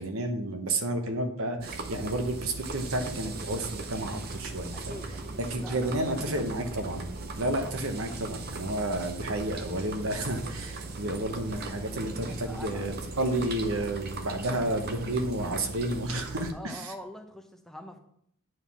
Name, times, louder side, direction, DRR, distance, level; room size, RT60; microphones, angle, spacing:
voice 1, 0.0-5.0 5.4-7.1 7.4-16.9, right 1 dB, 70° right, 5 dB, 1.1 m, -31 dB
sound 1, 1.6-16.5, right 3 dB, 45° right, 0.7 m, -39 dB
voice 2, 4.7-6.7 7.5-7.7 12.2-12.9 16.5-18.0, left 1 dB, ahead, 3 dB, 0.6 m, -45 dB
9.2 x 3.8 x 6.1 m, 0.70 s
head